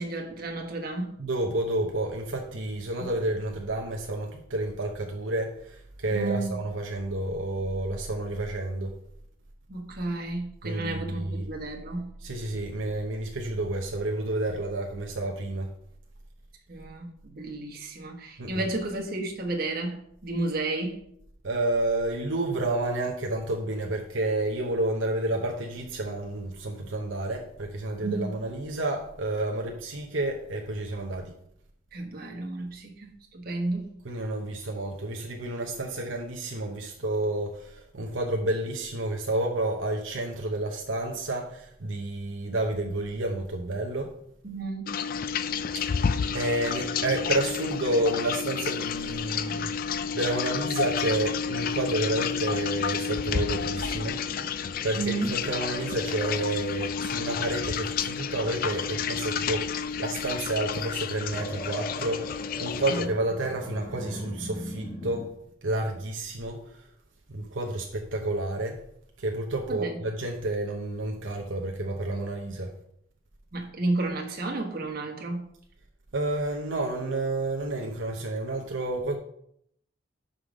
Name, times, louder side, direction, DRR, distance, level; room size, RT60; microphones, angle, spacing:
voice 1, 0.0-1.2 3.0-3.1 6.1-6.6 9.7-12.1 16.7-21.0 28.0-28.4 31.9-33.9 44.4-44.9 55.0-55.4 62.9-63.1 69.7-70.0 73.5-75.5, right 2 dB, 50° right, 1.3 m, -32 dB
voice 2, 1.2-8.9 10.6-11.4 12.2-15.7 18.4-18.7 21.4-31.3 34.0-44.1 45.7-54.2 54.8-65.4 65.6-66.9 67.3-68.8 69.2-72.7 76.1-79.2, right 2 dB, 70° right, 0.9 m, -30 dB
sound 1, 44.9-63.1, left 6 dB, 45° left, 0.3 m, -30 dB
Growling, 52.0-56.6 57.0-59.4 60.8-65.2, equal, 25° left, 1.8 m, -42 dB
5.6 x 5.1 x 6.2 m
head